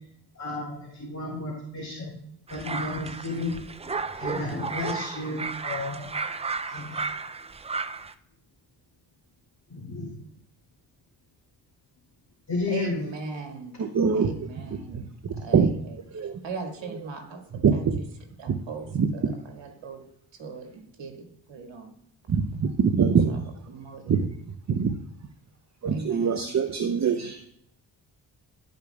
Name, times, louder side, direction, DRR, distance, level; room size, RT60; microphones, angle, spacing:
voice 1, 0.3-2.2 2.5-3.5 4.2-6.1 6.7-7.1 9.7-10.1 12.5-13.1, left 3 dB, 35° left, -4 dB, 2.6 m, -32 dB
sound 1, 2.5-8.1, right 4 dB, 15° right, 0.3 m, -33 dB
voice 2, 12.6-13.9 14.1-15.0 15.3-18.1 18.4-20.0 20.4-22.0 23.3-23.4 23.7-24.2 25.8-26.6 27.1-27.5, right 4 dB, 70° right, 3 dB, 1.9 m, -40 dB
voice 3, 13.8-14.3 15.5-15.7 16.1-16.4 17.6-18.0 18.9-19.1 22.3-23.4 24.1-24.2 24.7-25.0 25.8-27.5, right 6 dB, 40° right, 7 dB, 0.7 m, -23 dB
12.0 x 5.1 x 2.3 m, 0.72 s
supercardioid pair, 55°, 46 cm